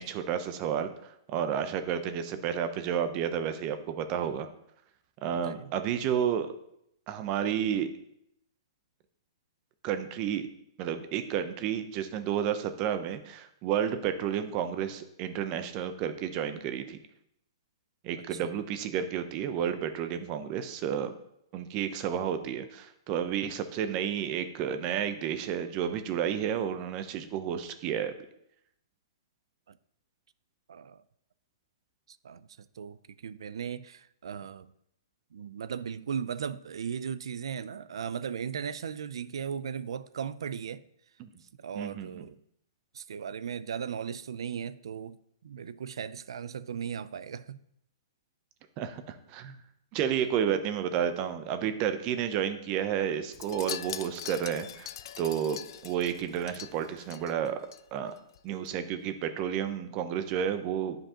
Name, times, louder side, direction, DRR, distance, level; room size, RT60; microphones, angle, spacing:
voice 1, 0.0-4.5 5.2-6.5 7.1-7.9 9.8-10.5 10.8-17.0 18.0-21.1 21.5-28.1 41.2-41.3 41.7-42.3 48.8-49.6 49.9-54.9 55.2-55.6 55.8-57.6 57.9-58.1 58.4-61.0, right 9 dB, 35° right, 0.6 m, -31 dB
voice 2, 18.2-18.5 29.7-29.8 30.7-31.0 32.1-34.7 35.3-40.8 41.6-42.4 42.9-45.2 45.4-47.6, right 7 dB, 80° right, 0.4 m, -37 dB
Wind chime, 53.3-57.8 58.1-58.4 58.7-58.8, left 11 dB, 60° left, 0.3 m, -42 dB
10.0 x 5.2 x 2.9 m
hypercardioid pair, 145°, 3 cm